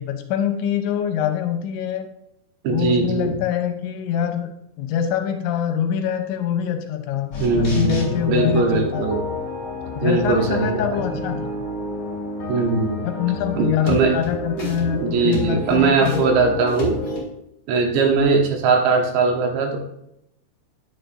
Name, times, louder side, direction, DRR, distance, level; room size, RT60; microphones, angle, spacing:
voice 1, 0.0-2.1 2.7-4.5 4.8-9.1 10.0-11.5 13.0-16.1, left 9 dB, 85° left, 5 dB, 3.0 m, -24 dB
voice 2, 2.6-3.4 7.4-9.2 10.0-11.0 12.5-13.0 13.5-14.2 14.6-17.0 17.7-19.8, right 4 dB, 75° right, 2 dB, 3.1 m, -20 dB
sound 1, 7.3-17.2, left 2 dB, 30° left, 2.7 m, -30 dB
9.7 x 9.1 x 2.6 m, 0.80 s
omnidirectional pair, 5.4 m